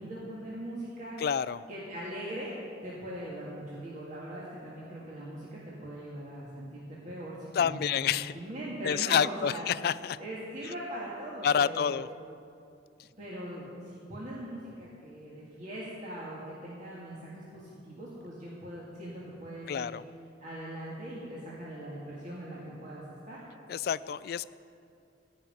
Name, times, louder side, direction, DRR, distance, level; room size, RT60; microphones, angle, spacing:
voice 1, 0.0-1.2 1.7-2.5 2.8-9.7 10.2-12.0 13.2-19.9 20.4-23.4, right 1 dB, 40° right, -6 dB, 1.9 m, -41 dB
voice 2, 1.2-1.6 7.5-8.3 8.8-10.2 11.4-12.1 19.7-20.0 23.7-24.5, left 8 dB, 55° left, 17 dB, 0.3 m, -28 dB
16.5 x 5.5 x 9.0 m, 2.5 s
head